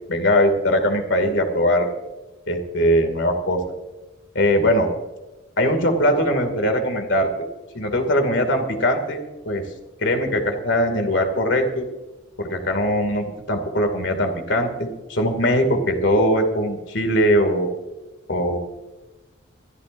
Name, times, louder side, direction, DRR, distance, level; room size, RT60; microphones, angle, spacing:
voice 1, 0.1-1.9 2.5-3.7 4.3-4.9 5.6-7.3 7.7-9.2 9.4-9.7 10.0-11.9 12.4-17.7 18.3-18.6, equal, 65° left, 5 dB, 2.4 m, -21 dB
22.5 x 13.5 x 2.6 m, 1.1 s
head